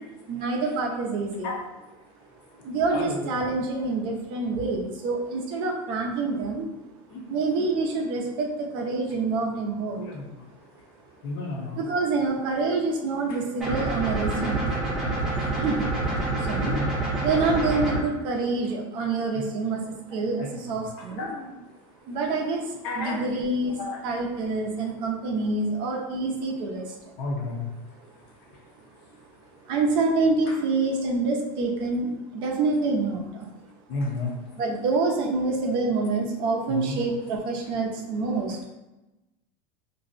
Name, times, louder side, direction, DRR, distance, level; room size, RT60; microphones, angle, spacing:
voice 1, 0.3-1.6 2.6-6.7 7.3-10.0 11.7-14.6 15.5-15.9 16.4-16.8 17.2-21.3 22.0-27.1 29.6-33.5 34.5-38.7, right 3 dB, 40° right, 0 dB, 0.5 m, -27 dB
voice 2, 11.2-11.8 16.6-16.9 21.2-21.5 22.8-23.2 23.8-24.0 27.2-27.6 33.9-34.3 36.7-37.0, left 3 dB, 45° left, -1 dB, 0.6 m, -31 dB
sound 1, 13.6-18.0, right 2 dB, 5° right, 0.7 m, -27 dB
2.5 x 2.0 x 3.8 m, 1.0 s
supercardioid pair, 170°, 13 cm